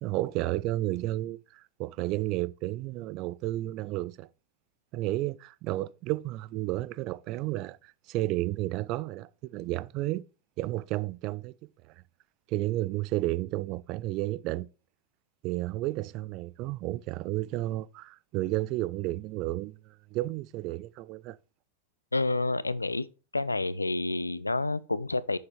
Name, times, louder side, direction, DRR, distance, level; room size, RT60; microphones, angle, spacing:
voice 1, 0.0-4.3 4.9-10.2 10.6-11.5 12.5-14.7 15.4-19.8 20.1-21.4, right 17 dB, 40° right, 0.3 m, -32 dB
voice 2, 22.1-23.1 23.3-25.4, left 2 dB, 80° left, 0.4 m, -29 dB
7.0 x 6.4 x 3.2 m
figure-of-eight pair, 90°, 0 cm